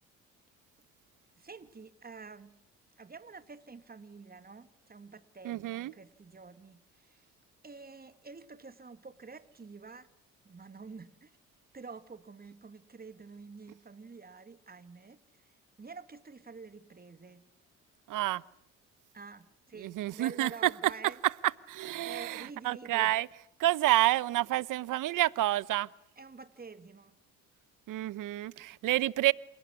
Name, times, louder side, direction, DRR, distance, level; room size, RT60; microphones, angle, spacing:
voice 1, 1.4-2.6 3.0-7.3 7.6-10.1 10.4-11.4 11.7-17.4 19.1-21.2 22.0-23.1 26.2-27.2, right 4 dB, 25° right, 2.5 m, -48 dB
voice 2, 5.4-5.9 18.1-18.4 19.8-20.9 21.2-21.3 21.7-23.3 23.6-25.9 27.9-29.3, right 15 dB, 65° right, 1.0 m, -29 dB
28.0 x 18.5 x 9.8 m
supercardioid pair, 65°, 34 cm